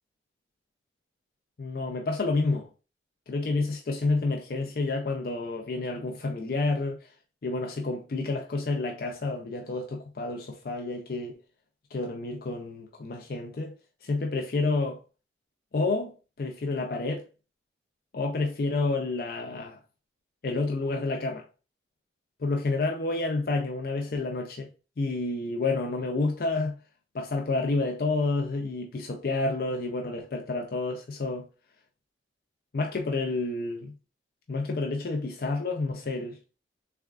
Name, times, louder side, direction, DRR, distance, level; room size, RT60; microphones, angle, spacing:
voice 1, 1.6-2.7 3.3-7.1 7.4-11.3 11.9-13.8 14.0-15.0 15.7-17.3 18.1-19.8 20.4-21.5 22.4-24.7 25.0-26.8 27.1-31.5 32.7-33.9 34.5-36.4, left 3 dB, 50° left, 0.4 m, -29 dB
3.5 x 3.4 x 2.3 m
head